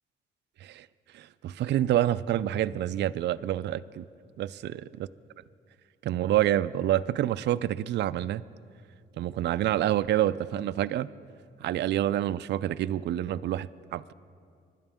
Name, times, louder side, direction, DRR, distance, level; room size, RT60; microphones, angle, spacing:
voice 1, 1.1-4.1 4.4-4.8 6.0-8.4 9.2-11.1 11.6-14.1, right 12 dB, 60° right, 13 dB, 0.4 m, -27 dB
25.0 x 12.0 x 3.6 m, 2.2 s
cardioid pair, 90°, 20 cm